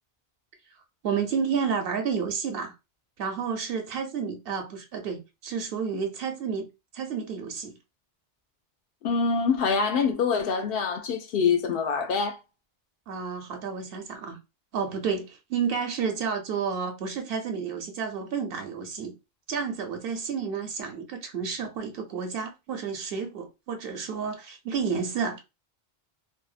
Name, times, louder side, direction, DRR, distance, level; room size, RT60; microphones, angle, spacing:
voice 1, 1.0-2.7 3.2-6.7 6.9-7.7 13.1-14.4 14.7-19.1 19.5-25.4, right 6 dB, 70° right, 0.7 m, -31 dB
voice 2, 9.0-12.4, left 5 dB, 70° left, 0.7 m, -25 dB
2.7 x 2.0 x 2.4 m
omnidirectional pair, 1.0 m